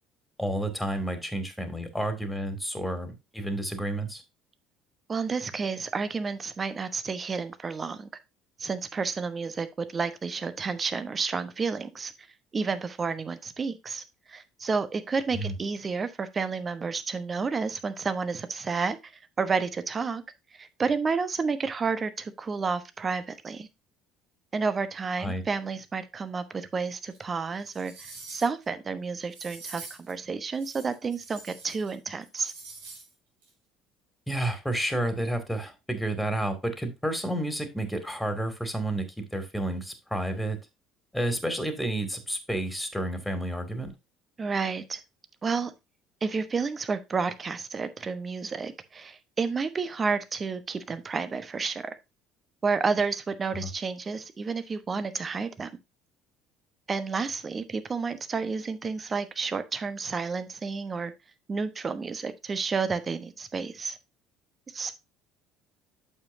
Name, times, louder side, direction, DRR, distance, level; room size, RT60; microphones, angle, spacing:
voice 1, 0.4-4.2 15.3-15.5 25.2-25.4 34.3-40.6 41.1-43.9 53.5-53.7, right 1 dB, 5° left, 7 dB, 2.4 m, -30 dB
voice 2, 5.1-8.1 8.6-12.1 12.5-14.0 14.3-19.0 19.4-20.2 20.5-23.7 24.5-32.5 44.4-45.0 45.4-45.7 46.2-52.0 52.6-55.7 56.9-61.1 61.5-64.0 64.7-65.0, right 5 dB, 30° right, 11 dB, 1.1 m, -30 dB
sound 1, 27.1-27.2 27.7-28.6 29.3-30.1 30.5-31.9 32.2-33.1 33.4-33.5, right 3 dB, 75° right, 2.8 m, -45 dB
8.6 x 7.2 x 2.7 m, 0.24 s
figure-of-eight pair, 60°, 0 cm